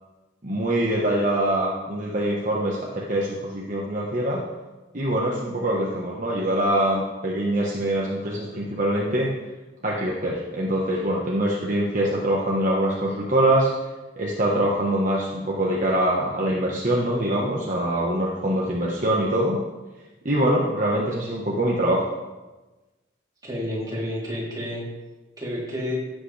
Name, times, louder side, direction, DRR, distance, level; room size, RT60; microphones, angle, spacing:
voice 1, 0.4-4.4 4.9-9.3 9.8-13.7 14.2-19.6 20.2-22.1, right 1 dB, 45° right, -4 dB, 1.3 m, -24 dB
voice 2, 23.4-24.9 25.4-26.0, left 1 dB, 20° right, -6 dB, 3.3 m, -30 dB
16.0 x 7.8 x 3.4 m, 1.2 s
head